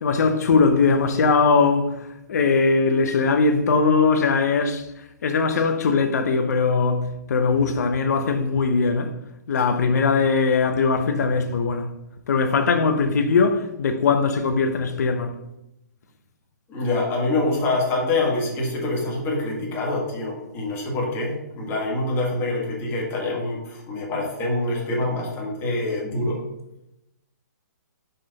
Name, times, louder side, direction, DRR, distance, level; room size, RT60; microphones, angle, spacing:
voice 1, 0.0-4.9 5.2-9.1 9.5-11.9 12.3-15.4, left 4 dB, 60° left, 0.8 m, -20 dB
voice 2, 16.7-26.4, left 2 dB, 20° left, 1.6 m, -25 dB
5.7 x 3.4 x 5.4 m
hypercardioid pair, 145°, 10 cm